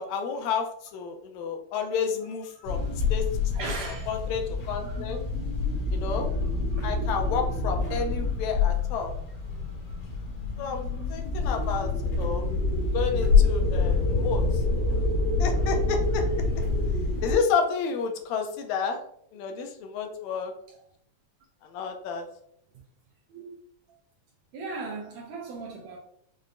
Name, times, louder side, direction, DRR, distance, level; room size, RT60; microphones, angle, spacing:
voice 1, 0.0-3.3 3.6-3.7 4.1-5.2 5.9-6.3 6.8-9.1 10.6-12.5 12.9-14.4 15.4-16.2 17.2-19.0 19.3-20.5 21.7-22.3, left 5 dB, 80° left, 1.9 m, -30 dB
sound 1, 2.6-17.3, left 3 dB, 65° left, 2.2 m, -26 dB
voice 2, 3.5-4.1 4.7-5.2 6.7-6.9 7.9-8.0 10.3-10.4 12.1-12.2 20.7-20.8 23.3-23.5 24.5-26.0, right 3 dB, 75° right, 1.7 m, -38 dB
6.2 x 2.1 x 2.5 m
omnidirectional pair, 3.3 m